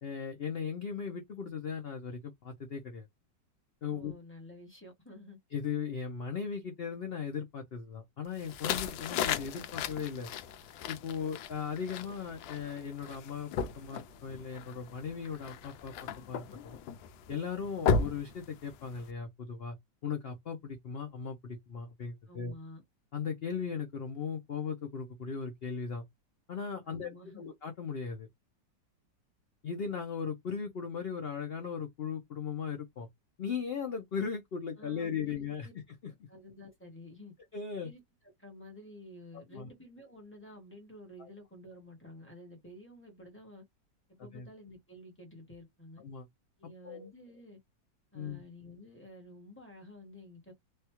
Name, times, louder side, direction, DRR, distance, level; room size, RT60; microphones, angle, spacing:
voice 1, 0.0-3.1 3.8-4.1 5.5-10.3 10.9-16.8 17.3-19.8 20.0-22.5 23.1-26.0 26.5-28.3 29.6-33.1 33.4-35.7 37.5-37.9 39.3-39.7 41.2-41.3 44.2-44.5 46.0-46.3 46.6-47.1 48.1-48.4, left 6 dB, 70° left, 0.5 m, -38 dB
voice 2, 3.9-5.4 22.3-22.8 26.9-27.5 34.8-35.7 36.1-37.3 37.8-38.0 38.4-43.6 44.1-46.0 46.6-47.6 48.1-50.5, left 1 dB, 10° left, 0.8 m, -51 dB
sound 1, 8.4-19.1, left 6 dB, 85° left, 1.3 m, -36 dB
3.4 x 2.3 x 2.9 m
omnidirectional pair, 2.0 m